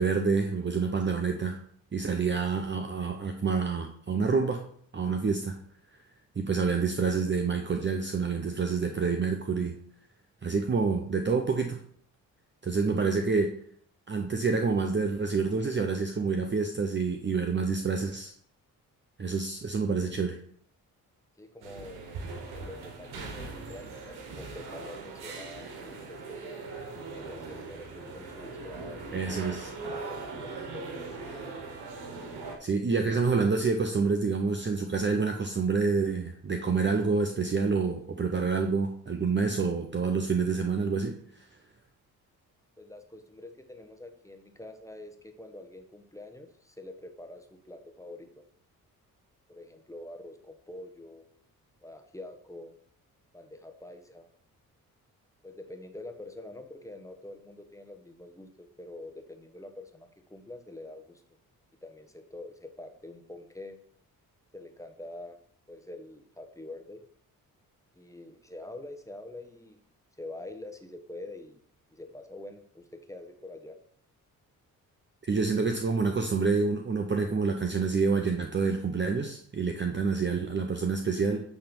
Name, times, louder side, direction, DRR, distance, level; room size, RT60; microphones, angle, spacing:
voice 1, 0.0-1.6 1.9-4.6 4.9-5.6 6.4-9.8 10.4-11.8 12.6-13.5 14.1-18.3 19.2-20.4 29.1-29.7 32.6-41.5 75.2-81.5, right 4 dB, 30° right, 4 dB, 0.8 m, -28 dB
voice 2, 21.4-22.2 22.5-26.7 27.2-29.4 30.0-31.2 42.8-48.4 49.5-51.3 51.8-52.7 53.3-54.3 55.4-61.2 61.8-63.8 64.5-65.4 65.7-67.0 67.9-69.8 70.2-71.6 71.9-73.8, left 2 dB, 10° left, 6 dB, 1.3 m, -46 dB
sound 1, 21.6-32.6, right 3 dB, 80° right, 1.3 m, -40 dB
8.8 x 3.4 x 5.4 m, 0.62 s
supercardioid pair, 55°, 38 cm